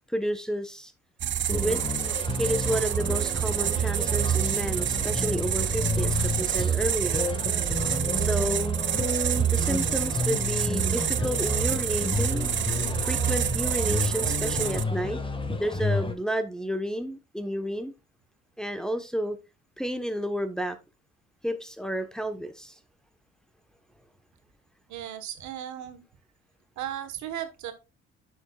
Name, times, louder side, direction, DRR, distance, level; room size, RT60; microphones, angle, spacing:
voice 1, 0.1-0.9 1.5-1.8 2.4-7.2 8.1-8.8 9.5-12.5 13.0-15.2 15.6-17.9 18.6-19.4 19.8-20.8 21.4-22.7, equal, ahead, 7 dB, 1.0 m, -31 dB
sound 1, 1.2-14.8, right 10 dB, 40° right, 0.5 m, -27 dB
sound 2, 1.5-16.1, left 3 dB, 15° left, 1.6 m, -31 dB
voice 2, 24.9-26.0 26.8-27.7, right 11 dB, 75° right, 9 dB, 1.3 m, -36 dB
9.6 x 6.5 x 2.3 m, 0.27 s
supercardioid pair, 75°, 29 cm